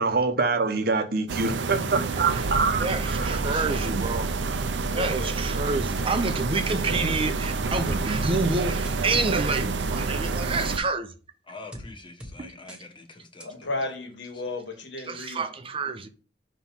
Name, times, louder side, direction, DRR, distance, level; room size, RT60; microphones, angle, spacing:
voice 1, 0.0-3.3, right 4 dB, 60° right, 0.8 m, -25 dB
sound 1, 1.3-10.8, right 3 dB, 85° right, 0.6 m, -28 dB
voice 2, 2.8-4.3 4.9-11.1 12.4-12.5 15.1-16.1, right 3 dB, 30° right, 0.6 m, -28 dB
voice 3, 3.5-3.9 4.6-5.3 13.4-15.5, left 2 dB, 85° left, 1.5 m, -35 dB
sound 2, 6.0-6.1 6.7-7.0 7.9-8.0 8.8-9.0 9.6-10.0 10.8-10.9 11.7-11.9 12.2-12.3 12.7-12.8 13.4-13.5, equal, 5° right, 1.0 m, -41 dB
voice 4, 11.5-13.7, left 3 dB, 30° left, 1.0 m, -45 dB
5.7 x 3.1 x 5.5 m
head